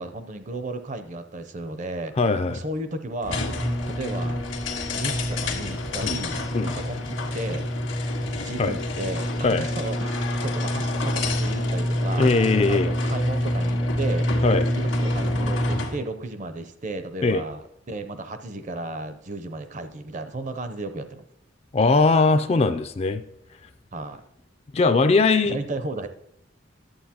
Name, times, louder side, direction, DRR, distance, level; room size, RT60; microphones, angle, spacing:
voice 1, 0.0-2.1 2.5-3.4 3.9-4.4 4.9-7.7 8.3-14.3 14.7-21.2 23.9-24.2 25.4-26.1, right 2 dB, 40° right, 10 dB, 0.5 m, -34 dB
voice 2, 2.2-2.6 6.0-6.2 6.5-6.7 8.6-8.8 9.4-9.6 12.2-12.9 14.4-14.6 17.2-17.4 21.7-23.2 24.7-25.6, left 3 dB, 30° left, 10 dB, 0.3 m, -20 dB
sound 1, 3.2-16.0, left 1 dB, 85° left, 1.5 m, -26 dB
11.5 x 7.8 x 2.9 m, 0.81 s
head